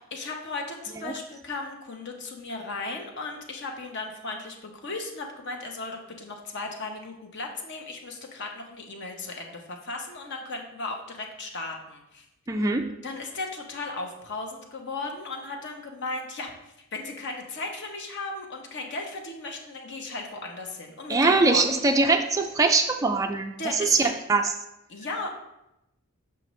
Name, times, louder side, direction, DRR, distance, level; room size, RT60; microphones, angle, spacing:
voice 1, 0.0-12.2 13.0-16.5 16.9-21.6 23.6-24.1 24.9-25.3, left 3 dB, 55° left, 2 dB, 0.9 m, -36 dB
voice 2, 12.5-12.9 21.1-24.5, right 3 dB, 15° right, 4 dB, 0.3 m, -22 dB
6.7 x 5.8 x 3.1 m, 0.88 s
head